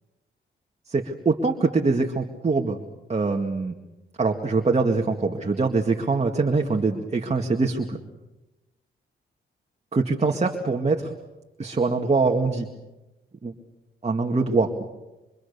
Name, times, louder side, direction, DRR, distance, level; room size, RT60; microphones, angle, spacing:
voice 1, 0.9-2.8 3.1-3.7 4.2-8.0 9.9-11.1 11.6-12.7 13.4-13.5 14.0-14.8, right 3 dB, 30° right, 2 dB, 2.0 m, -23 dB
25.5 x 25.0 x 6.9 m, 1.0 s
cardioid pair, 80°, 21 cm